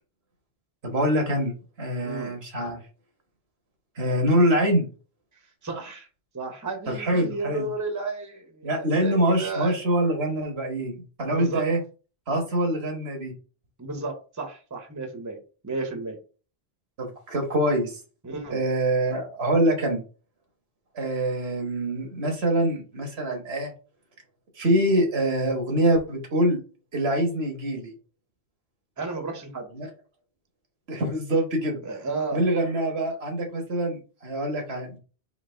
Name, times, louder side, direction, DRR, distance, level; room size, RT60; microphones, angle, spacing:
voice 1, 0.8-2.8 4.0-4.9 6.9-7.7 8.6-11.8 12.3-13.3 17.0-18.0 18.5-20.0 20.9-23.7 24.6-26.6 26.9-27.9 29.7-29.9 30.9-31.8 32.3-34.9, right 1 dB, 85° right, 2 dB, 1.6 m, -25 dB
voice 2, 2.0-2.3 5.6-6.1 6.3-9.8 11.3-11.6 13.8-15.4 15.6-16.2 18.2-18.7 29.0-29.7 31.8-32.4, right 3 dB, 20° right, 4 dB, 0.8 m, -32 dB
4.0 x 3.0 x 4.3 m, 0.37 s
omnidirectional pair, 1.0 m